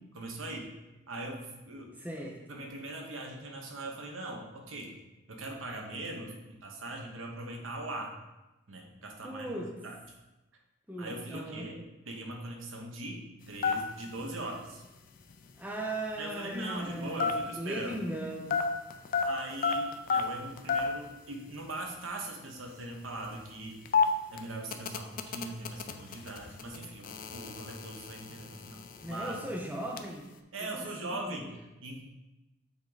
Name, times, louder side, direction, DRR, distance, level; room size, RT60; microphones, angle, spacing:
voice 1, 0.1-0.7 1.1-1.9 2.5-5.0 5.3-8.1 8.7-9.5 9.8-10.0 11.0-11.8 12.1-14.8 16.2-18.0 19.2-23.8 24.3-29.4 30.5-31.5 31.8-32.0, right 2 dB, 85° right, 1 dB, 1.0 m, -40 dB
voice 2, 2.0-2.4 9.2-9.7 10.9-11.7 15.6-18.6 28.2-28.6 29.0-30.3 30.7-31.5, right 1 dB, 10° right, 0 dB, 0.6 m, -38 dB
sound 1, 13.4-18.2 18.5-21.1 21.3-21.4 21.6-21.9 22.4-30.1, left 5 dB, 45° left, 0.4 m, -32 dB
7.2 x 3.7 x 4.0 m, 1.0 s
head